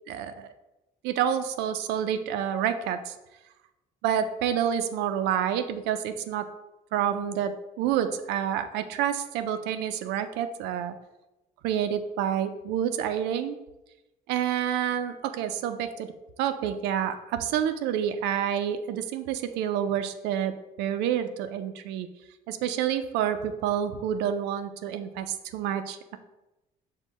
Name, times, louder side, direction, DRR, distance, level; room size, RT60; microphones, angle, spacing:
voice 1, 0.1-0.5 1.0-3.1 4.0-6.5 6.9-11.0 11.6-13.6 14.3-16.1 16.4-22.1 22.5-26.2, right 9 dB, 90° right, 9 dB, 0.4 m, -28 dB
5.4 x 2.2 x 4.1 m, 0.98 s
cardioid pair, 110°, 17 cm